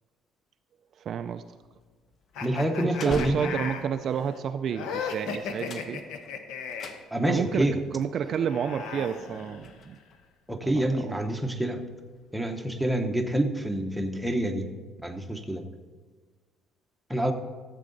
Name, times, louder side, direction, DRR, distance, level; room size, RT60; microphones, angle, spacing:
voice 1, 1.0-1.6 2.8-6.0 7.2-10.0 10.6-11.2, right 7 dB, 40° right, 9 dB, 0.3 m, -30 dB
sound 1, 1.3-4.0 4.8-5.1 5.4-7.5 8.0-8.1 8.7-10.2, left 3 dB, 40° left, 0.8 m, -42 dB
sound 2, 2.3-7.0 8.2-9.9, left 5 dB, 80° left, 1.0 m, -37 dB
voice 2, 2.4-3.5 7.1-7.8 10.5-11.8 12.3-14.7 15.0-15.6 17.1-17.3, right 1 dB, ahead, 3 dB, 0.8 m, -27 dB
14.5 x 7.5 x 3.9 m, 1.4 s
cardioid pair, 160°, 0 cm